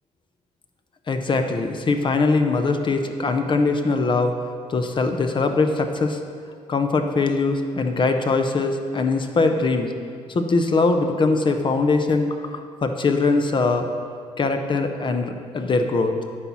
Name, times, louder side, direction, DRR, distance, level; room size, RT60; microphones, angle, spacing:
voice 1, 1.1-4.3 4.7-6.2 6.7-9.9 10.3-12.4 12.8-13.9 14.4-16.1, left 3 dB, 40° left, 6 dB, 0.8 m, -21 dB
9.7 x 4.2 x 6.1 m, 2.1 s
supercardioid pair, 70°, 13 cm